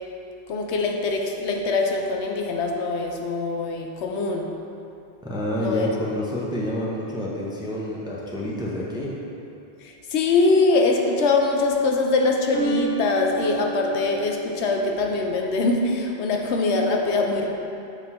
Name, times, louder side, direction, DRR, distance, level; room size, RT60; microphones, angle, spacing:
voice 1, 0.5-4.5 5.6-5.9 9.8-17.5, left 3 dB, 85° left, 1 dB, 0.9 m, -23 dB
voice 2, 5.2-9.1, left 1 dB, 5° right, -5 dB, 0.5 m, -28 dB
sound 1, 11.3-11.8 12.5-15.4, right 4 dB, 65° right, 1.1 m, -31 dB
6.2 x 3.6 x 4.3 m, 2.8 s
omnidirectional pair, 1.1 m